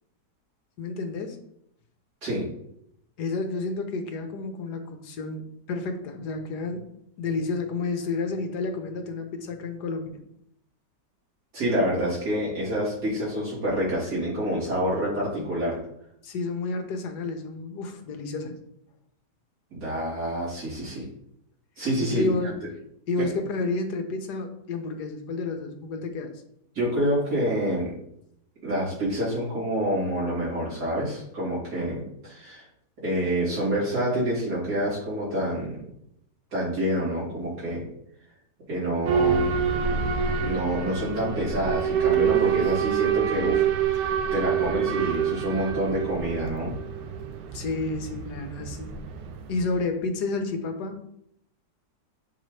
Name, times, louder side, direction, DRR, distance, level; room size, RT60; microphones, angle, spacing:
voice 1, 0.8-1.4 3.2-6.9 7.2-10.1 15.4-15.5 16.2-18.6 22.0-22.6 23.1-26.3 47.5-49.0 49.5-51.0, left 3 dB, 75° left, 6 dB, 1.3 m, -30 dB
voice 2, 11.5-15.8 19.7-21.1 21.8-22.5 23.2-23.3 26.7-27.9 28.6-32.6 33.0-35.8 36.5-37.9 38.7-39.5 40.4-46.7, equal, 70° right, -8 dB, 3.4 m, -27 dB
Boat Water vehicle / Alarm, 39.1-49.7, right 8 dB, 90° right, 1.3 m, -26 dB
7.7 x 3.9 x 3.2 m, 0.75 s
omnidirectional pair, 1.8 m